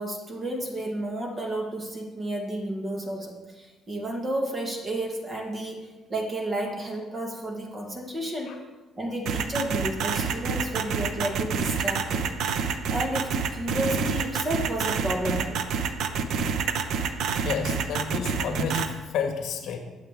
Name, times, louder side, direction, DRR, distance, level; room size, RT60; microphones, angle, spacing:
voice 1, 0.0-8.6 9.0-12.3 12.9-15.6, right 1 dB, 20° right, 2 dB, 1.4 m, -31 dB
sound 1, 9.3-18.9, right 6 dB, 65° right, 0.8 m, -27 dB
voice 2, 17.4-19.8, left 5 dB, 60° left, 3 dB, 1.6 m, -30 dB
21.5 x 7.3 x 3.5 m, 1.2 s
cardioid pair, 175°, 0 cm